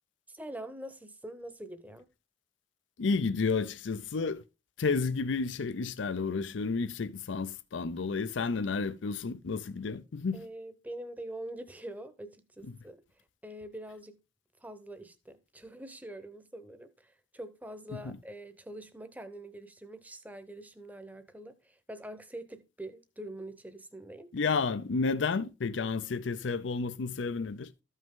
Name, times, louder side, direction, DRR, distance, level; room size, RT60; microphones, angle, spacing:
voice 1, 0.3-2.1 10.3-13.0 13.4-14.2 14.6-24.3, right 1 dB, 10° right, 0.8 m, -44 dB
voice 2, 3.0-4.4 4.8-10.4 18.0-18.2 24.3-27.7, left 4 dB, 85° left, 0.5 m, -31 dB
13.0 x 5.5 x 3.7 m
head